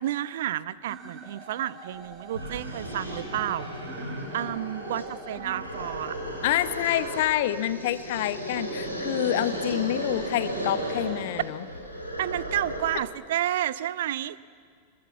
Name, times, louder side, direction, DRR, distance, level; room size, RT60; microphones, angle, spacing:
voice 1, 0.0-6.2 12.2-14.4, right 12 dB, 55° right, 18 dB, 0.6 m, -31 dB
sound 1, 0.9-6.8, right 2 dB, 30° right, 4.1 m, -44 dB
sound 2, 1.9-2.0 2.3-13.1, equal, 90° right, 3.6 m, -35 dB
voice 2, 6.4-11.6, left 13 dB, 50° left, 14 dB, 1.0 m, -27 dB
25.5 x 22.0 x 7.4 m, 2.1 s
figure-of-eight pair, 90°, 0 cm